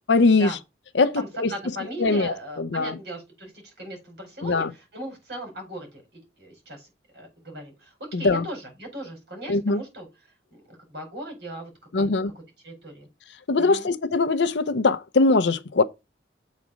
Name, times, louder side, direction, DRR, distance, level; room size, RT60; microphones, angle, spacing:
voice 1, 0.1-0.6 0.9-1.5 2.0-3.0 4.4-4.7 8.1-8.4 9.5-9.8 11.9-12.3 13.5-15.8, left 3 dB, 85° left, 0.6 m, -21 dB
voice 2, 1.0-6.9 7.1-10.1 10.5-12.1 12.6-13.1 13.6-13.9, right 1 dB, 65° right, 4.5 m, -38 dB
7.3 x 4.1 x 6.2 m
head